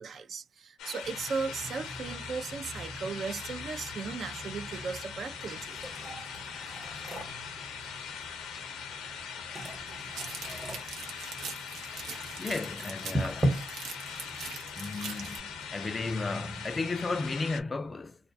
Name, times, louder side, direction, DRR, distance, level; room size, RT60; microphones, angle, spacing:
voice 1, 0.0-5.8, right 5 dB, 55° right, 0.4 m, -36 dB
sound 1, 0.8-17.6, left 7 dB, 90° left, 0.6 m, -41 dB
sound 2, 1.0-17.3, right 1 dB, 25° right, 0.9 m, -40 dB
sound 3, 10.1-15.4, right 6 dB, 85° right, 0.7 m, -42 dB
voice 2, 12.4-13.6 14.8-15.4 15.7-18.2, left 3 dB, 30° left, 0.3 m, -34 dB
2.2 x 2.2 x 2.6 m
cardioid pair, 90°, 0 cm